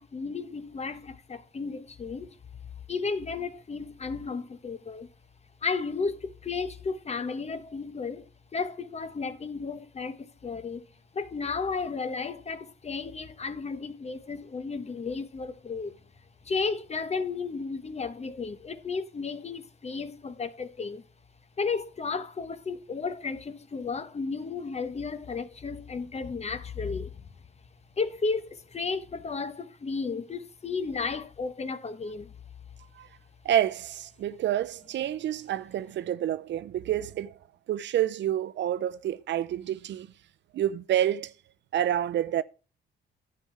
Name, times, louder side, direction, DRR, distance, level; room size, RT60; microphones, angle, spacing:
voice 1, 0.0-2.4 2.9-5.1 5.6-10.8 11.1-15.9 16.4-21.0 21.6-27.1 28.0-32.3, left 4 dB, 35° left, 1.0 m, -33 dB
voice 2, 33.4-37.3 37.7-40.1 40.5-41.3 41.7-42.4, right 11 dB, 65° right, 0.6 m, -28 dB
11.0 x 7.8 x 3.3 m
cardioid pair, 90°, 20 cm